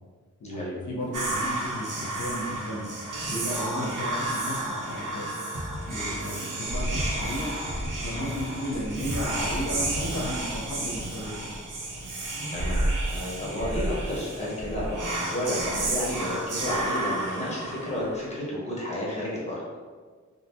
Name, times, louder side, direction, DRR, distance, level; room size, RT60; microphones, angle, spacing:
voice 1, 0.4-2.9 3.3-5.3 5.9-7.5 8.0-11.5, equal, 75° left, -2 dB, 0.8 m, -34 dB
sound 1, 1.0-1.2 2.9-15.7, left 1 dB, 15° right, 1.4 m, -50 dB
Whispering, 1.1-18.3, right 1 dB, 80° right, 0.6 m, -31 dB
sound 2, 5.5-11.2, equal, 45° right, 0.8 m, -37 dB
voice 2, 12.5-19.6, left 1 dB, 20° left, -6 dB, 1.0 m, -32 dB
3.6 x 2.1 x 2.7 m, 1.5 s
wide cardioid pair, 60°, 30 cm